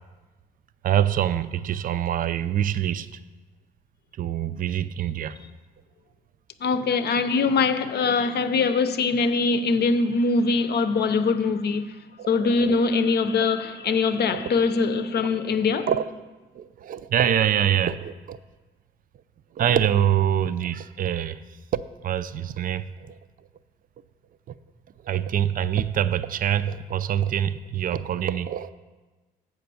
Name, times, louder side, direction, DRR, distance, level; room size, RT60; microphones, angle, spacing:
voice 1, 0.8-3.1 4.2-5.4 12.2-12.9 13.9-14.0 14.3-14.4 15.9-16.1 16.5-18.4 19.6-21.4 21.7-23.1 25.0-28.7, right 10 dB, 45° right, 0.4 m, -25 dB
voice 2, 6.6-11.9 12.3-15.9, left 4 dB, 55° left, 0.6 m, -22 dB
7.8 x 5.2 x 6.9 m
cardioid pair, 90°, 20 cm